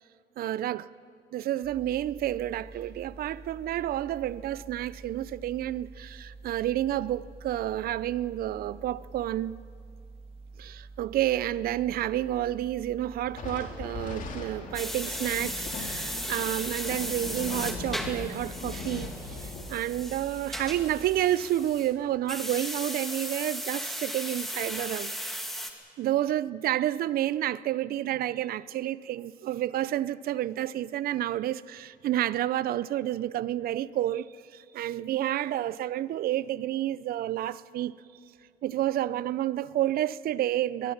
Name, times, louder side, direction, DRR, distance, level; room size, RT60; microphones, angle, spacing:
voice 1, 0.4-0.9 1.3-9.6 10.6-25.1 26.0-37.9 38.6-40.9, right 13 dB, 60° right, 0.6 m, -30 dB
sound 1, 1.6-21.2, right 3 dB, 35° right, 2.9 m, -48 dB
Thunder, 13.3-22.0, left 4 dB, 50° left, 3.2 m, -40 dB
sound 2, 14.7-21.9 22.3-25.7, equal, ahead, 2.3 m, -36 dB
21.5 x 20.5 x 7.3 m
cardioid pair, 110°, 17 cm